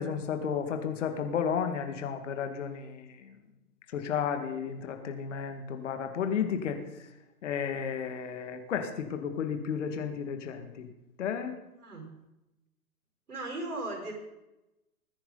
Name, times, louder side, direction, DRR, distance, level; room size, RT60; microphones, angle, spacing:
voice 1, 0.0-3.0 3.9-6.8 7.4-10.7 11.2-11.5, left 7 dB, 55° left, 6 dB, 2.0 m, -32 dB
voice 2, 11.8-12.2 13.3-14.1, right 2 dB, 80° right, 1 dB, 5.3 m, -37 dB
20.5 x 9.9 x 4.0 m, 0.96 s
figure-of-eight pair, 120°, 44 cm